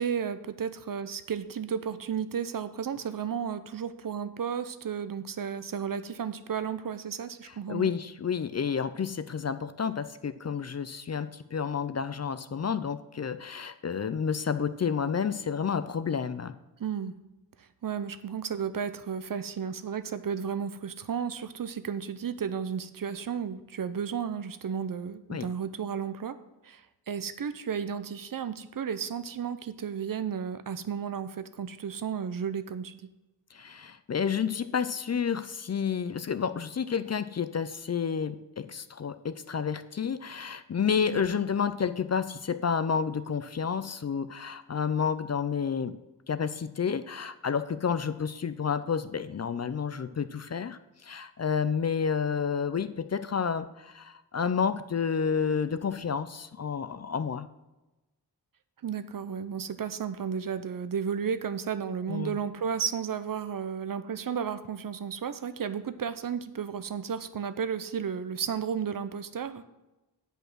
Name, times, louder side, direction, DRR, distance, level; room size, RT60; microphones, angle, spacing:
voice 1, 0.0-7.9 16.8-17.1 17.6-26.4 26.6-33.1 41.1-41.2 58.8-69.6, right 7 dB, 55° right, 12 dB, 0.6 m, -33 dB
voice 2, 7.4-16.5 25.3-25.5 33.5-45.9 46.3-57.5 62.1-62.4, left 6 dB, 40° left, 12 dB, 0.5 m, -30 dB
8.7 x 5.4 x 6.1 m, 1.0 s
wide cardioid pair, 115°, 40 cm